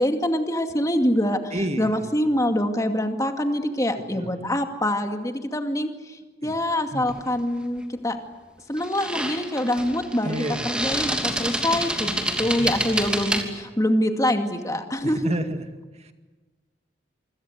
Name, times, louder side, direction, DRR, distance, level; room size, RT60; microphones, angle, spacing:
voice 1, 0.0-8.2 8.7-15.3, left 1 dB, 20° left, 5 dB, 2.3 m, -25 dB
voice 2, 1.5-2.1 4.1-4.5 6.4-6.5 6.9-7.1 10.2-10.8 12.3-13.2 15.0-15.7 15.9-16.1, right 1 dB, 35° right, 7 dB, 2.1 m, -31 dB
sound 1, 7.1-7.3 8.8-13.4, right 1 dB, 5° right, 2.9 m, -28 dB
27.0 x 25.5 x 8.2 m, 1.3 s
head